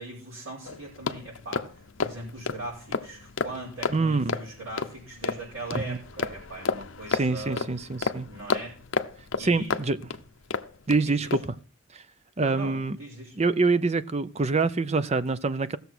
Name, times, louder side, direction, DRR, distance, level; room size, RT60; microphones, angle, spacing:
voice 1, 0.0-7.7 8.3-8.8 9.3-9.8 11.0-11.4 12.4-13.4, right 2 dB, 65° right, 5.2 m, -40 dB
sound 1, 0.6-11.0 11.3-11.5, left 4 dB, 60° left, 0.7 m, -32 dB
voice 2, 3.9-4.4 5.8-6.0 7.1-8.3 9.4-10.0 10.9-11.4 11.9-12.0 12.4-13.0 13.4-15.8, right 3 dB, 30° right, 0.5 m, -25 dB
16.0 x 6.9 x 6.1 m
head